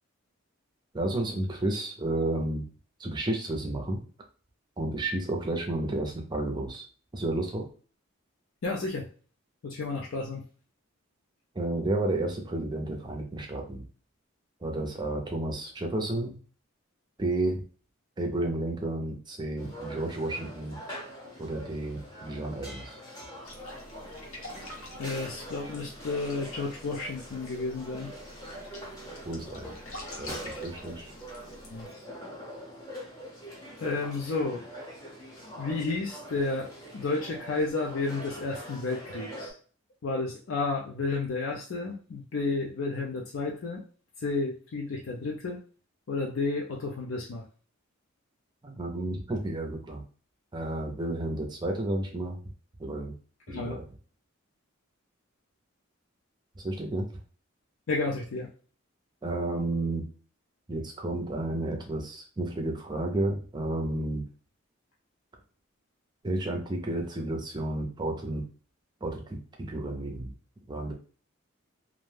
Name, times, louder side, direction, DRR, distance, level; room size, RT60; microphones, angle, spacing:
voice 1, 0.9-2.6 3.0-4.0 4.8-6.8 7.1-7.6 11.5-13.9 14.6-16.4 17.2-17.6 18.2-20.8 21.4-23.0 29.2-29.7 30.2-31.1 48.6-50.0 50.5-52.4 52.8-53.1 53.5-53.8 56.6-57.1 59.2-60.0 60.7-64.2 66.2-68.4 69.0-69.4 69.7-70.3 70.7-70.9, right 2 dB, 20° right, 2 dB, 0.5 m, -31 dB
voice 2, 8.6-9.1 9.6-10.4 25.0-28.1 31.7-32.0 33.8-34.6 35.6-39.6 40.0-43.8 44.2-45.6 46.1-47.4 53.5-53.8 57.9-58.5, left 3 dB, 65° left, -1 dB, 0.4 m, -32 dB
sound 1, 19.6-39.5, equal, 15° left, 0.8 m, -44 dB
sound 2, 23.4-31.9, left 1 dB, 80° left, 0.9 m, -47 dB
2.5 x 2.1 x 3.2 m, 0.40 s
head